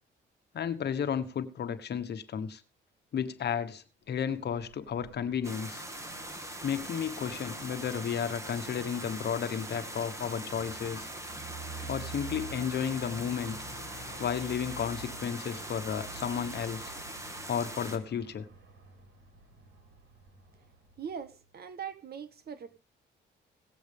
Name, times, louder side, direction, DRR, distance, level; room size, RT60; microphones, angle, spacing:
voice 1, 0.5-2.6 3.1-5.8 6.6-11.1 11.9-13.6 14.2-16.9 17.5-18.4, left 8 dB, 55° left, 10 dB, 1.3 m, -33 dB
Aircraft, 4.3-21.5, right 3 dB, 75° right, 4.6 m, -49 dB
sound 1, 5.4-18.0, right 1 dB, 15° right, 2.2 m, -42 dB
voice 2, 21.0-22.8, right 7 dB, 50° right, 10 dB, 1.6 m, -41 dB
17.5 x 8.1 x 3.5 m, 0.32 s
cardioid pair, 90°, 20 cm